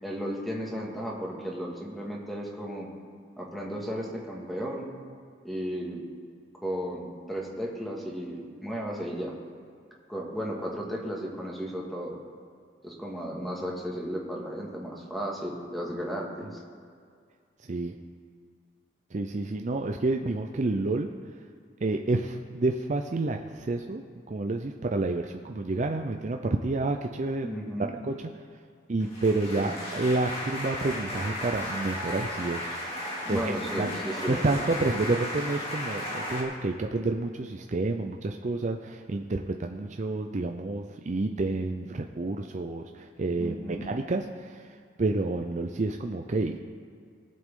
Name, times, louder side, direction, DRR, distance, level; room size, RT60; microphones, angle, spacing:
voice 1, 0.0-2.9 3.4-4.9 5.4-6.0 6.6-9.3 10.1-12.2 12.8-16.6 27.4-27.9 29.6-29.8 33.2-34.4 43.4-43.9, equal, ahead, -3 dB, 1.9 m, -34 dB
voice 2, 19.1-21.1 21.8-27.5 28.0-28.1 28.9-32.8 33.3-33.9 34.3-46.6, right 2 dB, 40° right, 4 dB, 0.5 m, -29 dB
sound 1, 29.0-36.4, left 1 dB, 35° left, 2.3 m, -35 dB
19.0 x 7.7 x 3.7 m, 2.2 s
head